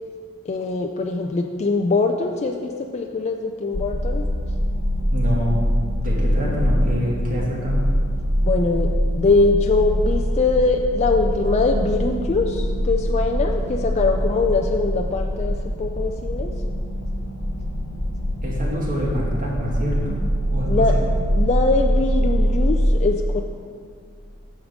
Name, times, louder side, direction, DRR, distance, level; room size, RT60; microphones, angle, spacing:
voice 1, 0.5-4.3 8.4-8.9 9.2-16.5 20.7-21.0 21.3-23.4, left 3 dB, 30° left, 3 dB, 0.4 m, -22 dB
sound 1, 3.7-22.9, equal, 65° left, 0.9 m, -23 dB
voice 2, 5.1-5.6 6.0-7.8 18.4-20.2 20.5-21.0, equal, 40° right, -4 dB, 2.1 m, -26 dB
9.2 x 6.5 x 5.1 m, 2.1 s
head